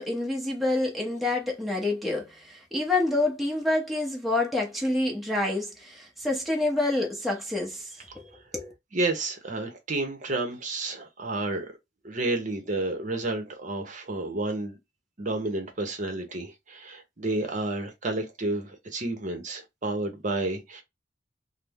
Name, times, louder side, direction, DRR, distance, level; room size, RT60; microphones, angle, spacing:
voice 1, 0.0-7.9 8.5-8.7, left 2 dB, ahead, 0.8 m, -27 dB
voice 2, 8.1-8.4 8.9-11.7 12.0-14.8 15.2-20.8, right 2 dB, 40° right, 0.8 m, -31 dB
3.3 x 2.0 x 3.4 m
head